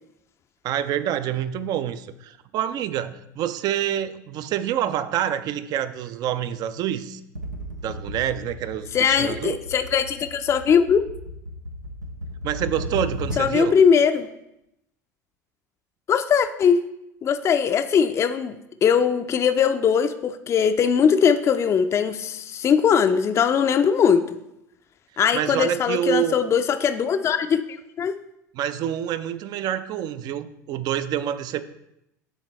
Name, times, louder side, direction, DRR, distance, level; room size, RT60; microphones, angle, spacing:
voice 1, 0.6-7.2 7.8-9.6 12.4-13.8 25.3-26.4 28.5-31.6, right 11 dB, 45° right, 14 dB, 0.4 m, -27 dB
sound 1, 7.4-13.7, left 1 dB, 90° right, 0.6 m, -35 dB
voice 2, 8.9-11.0 13.4-14.3 16.1-16.8 17.2-18.6 18.8-24.2 25.2-27.6 28.0-28.1, left 7 dB, 30° left, 7 dB, 0.4 m, -20 dB
9.2 x 4.0 x 3.1 m, 0.84 s
figure-of-eight pair, 75°, 9 cm